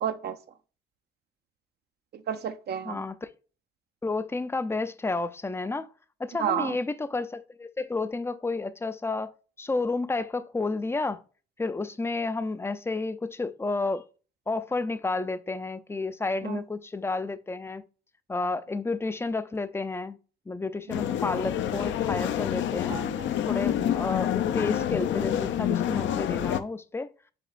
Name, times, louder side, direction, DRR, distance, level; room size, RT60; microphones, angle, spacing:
voice 1, 0.0-0.4 2.1-3.0 6.4-6.8 16.4-16.6 22.9-23.3, right 9 dB, 55° right, 0.5 m, -31 dB
voice 2, 2.9-3.3 4.0-5.9 6.2-11.2 11.6-14.0 14.5-17.8 18.3-20.2 20.5-23.0 23.5-27.1, left 3 dB, 10° left, 0.4 m, -31 dB
sound 1, 20.9-26.6, left 10 dB, 70° left, 0.5 m, -28 dB
5.0 x 3.7 x 2.5 m
cardioid pair, 90°, 20 cm